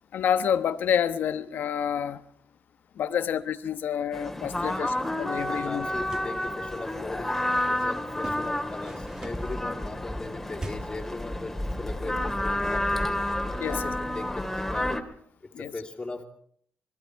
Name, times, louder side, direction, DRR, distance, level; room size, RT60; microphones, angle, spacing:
voice 1, 0.1-2.2 3.0-5.9 13.6-13.9 15.5-15.7, left 8 dB, 75° left, 12 dB, 1.1 m, -28 dB
sound 1, 4.1-15.0, left 1 dB, 10° left, 2.1 m, -30 dB
voice 2, 4.6-4.9 5.5-13.2 13.7-15.0 15.4-16.2, left 3 dB, 25° left, -4 dB, 2.4 m, -39 dB
sound 2, 6.1-6.4 8.2-9.6 10.6-11.1, right 2 dB, 20° right, 1.6 m, -41 dB
27.5 x 20.5 x 4.6 m, 0.62 s
cardioid pair, 100°, 3 cm